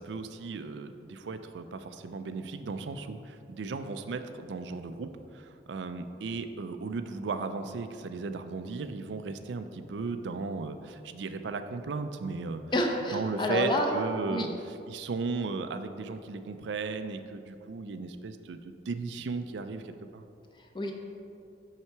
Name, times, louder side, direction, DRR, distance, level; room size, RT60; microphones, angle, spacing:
voice 1, 0.0-12.6 13.1-20.2, right 4 dB, 85° right, 9 dB, 0.4 m, -36 dB
voice 2, 12.7-13.9 14.3-14.5 20.7-20.9, left 1 dB, 25° left, 2 dB, 0.7 m, -28 dB
5.9 x 5.6 x 4.5 m, 2.6 s
head